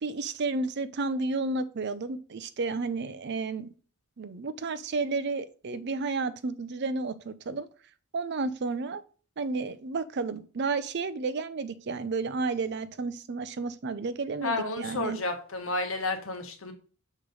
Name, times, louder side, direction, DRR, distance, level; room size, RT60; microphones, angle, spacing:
voice 1, 0.0-3.7 4.2-7.7 8.1-9.0 9.4-15.2, right 3 dB, 50° right, 0.5 m, -32 dB
voice 2, 14.4-16.7, left 2 dB, 65° left, 1.3 m, -31 dB
6.5 x 3.2 x 5.2 m
head